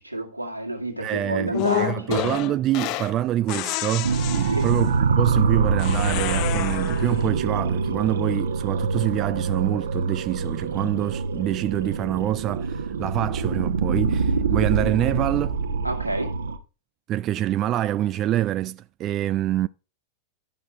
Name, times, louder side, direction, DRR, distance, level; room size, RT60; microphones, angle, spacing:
voice 1, 0.0-2.2 4.5-4.7 15.8-16.3, right 1 dB, 85° right, 1.9 m, -29 dB
voice 2, 1.0-15.6 17.1-19.7, right 13 dB, 35° right, 0.4 m, -26 dB
sound 1, 1.5-3.2 3.5-4.9 5.8-7.2, left 17 dB, 40° left, 0.4 m, -29 dB
sound 2, 4.0-16.6, right 4 dB, 65° right, 1.0 m, -25 dB
12.0 x 5.9 x 4.4 m
figure-of-eight pair, 90°, 0 cm